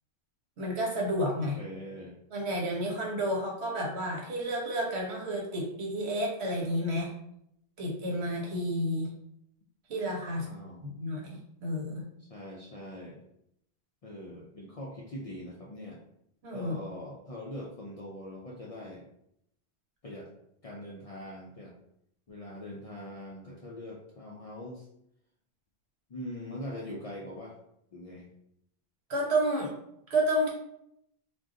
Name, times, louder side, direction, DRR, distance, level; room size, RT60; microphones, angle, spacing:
voice 1, 0.6-1.6 2.3-7.1 7.8-9.1 9.9-10.5 10.8-12.0 16.4-16.7 29.1-29.7 30.1-30.5, equal, 80° right, -1 dB, 1.1 m, -30 dB
voice 2, 1.3-2.2 10.2-10.8 12.3-13.2 14.0-16.0 16.5-19.0 20.0-20.3 20.6-21.7 22.3-24.9 26.1-27.6 27.9-28.3, left 1 dB, 55° left, -3 dB, 0.4 m, -42 dB
2.5 x 2.2 x 3.6 m, 0.76 s
omnidirectional pair, 1.1 m